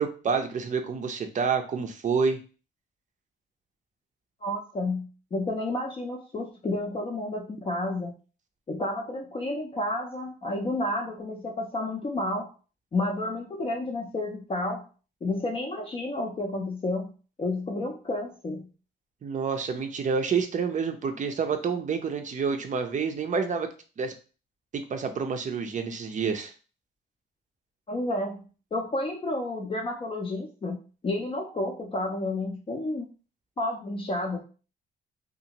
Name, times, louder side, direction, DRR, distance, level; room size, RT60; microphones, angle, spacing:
voice 1, 0.0-2.4 19.2-23.7 24.0-24.1 24.7-26.5, right 5 dB, 40° right, 6 dB, 0.5 m, -28 dB
voice 2, 4.4-8.1 8.7-12.5 12.9-14.8 15.2-17.1 17.4-18.7 27.9-28.4 28.7-30.8 31.0-33.1 33.6-34.4, left 2 dB, 25° left, 0 dB, 0.5 m, -31 dB
2.7 x 2.4 x 2.8 m, 0.36 s
cardioid pair, 90°, 20 cm